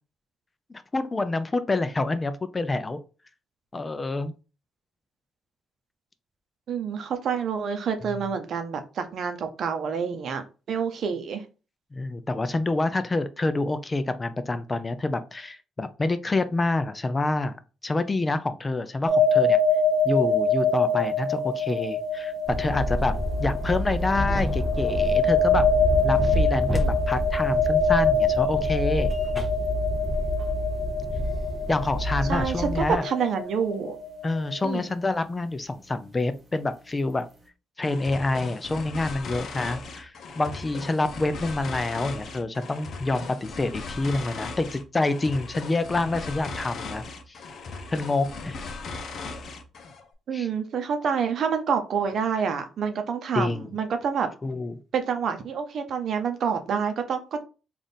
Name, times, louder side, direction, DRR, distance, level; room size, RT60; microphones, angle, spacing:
voice 1, 0.7-3.0 3.7-4.3 11.9-17.6 17.8-19.6 20.0-23.1 23.4-25.7 26.0-29.1 31.7-33.0 34.2-37.3 37.8-47.4 47.9-48.6 50.3-50.5 53.3-53.7 54.4-54.7, left 2 dB, 25° left, 0.4 m, -27 dB
voice 2, 6.7-11.4 32.3-34.0 34.6-34.9 50.3-54.3 54.9-57.4, right 6 dB, 60° right, 0.7 m, -28 dB
sound 1, 19.1-34.7, left 3 dB, 40° right, 1.0 m, -25 dB
sound 2, 22.5-33.0, left 1 dB, 5° left, 0.9 m, -28 dB
sound 3, 37.8-50.1, left 3 dB, 60° left, 0.7 m, -38 dB
3.5 x 2.5 x 4.0 m
cardioid pair, 90°, 0 cm